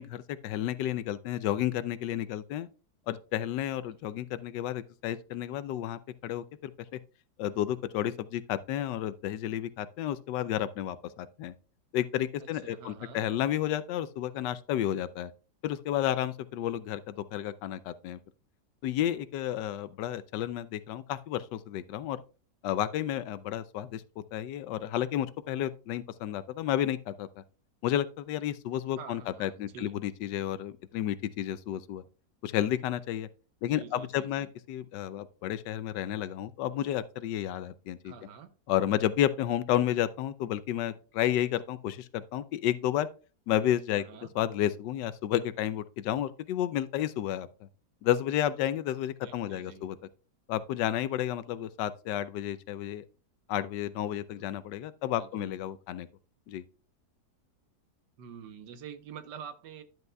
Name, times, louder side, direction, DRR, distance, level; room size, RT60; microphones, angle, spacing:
voice 1, 0.0-2.7 3.1-7.0 7.4-11.5 11.9-15.3 15.6-18.2 18.8-22.2 22.6-27.3 27.8-32.0 32.4-33.3 33.6-38.1 38.7-43.1 43.5-44.0 44.3-47.5 48.0-50.0 50.5-53.0 53.5-56.1 56.5-56.6, left 12 dB, 85° left, 1.2 m, -31 dB
voice 2, 12.4-13.2 29.0-30.0 33.7-34.5 38.0-38.5 43.9-44.3 49.2-49.8 55.1-55.6 58.2-59.8, right 7 dB, 80° right, 1.5 m, -47 dB
11.0 x 7.9 x 2.2 m
omnidirectional pair, 1.8 m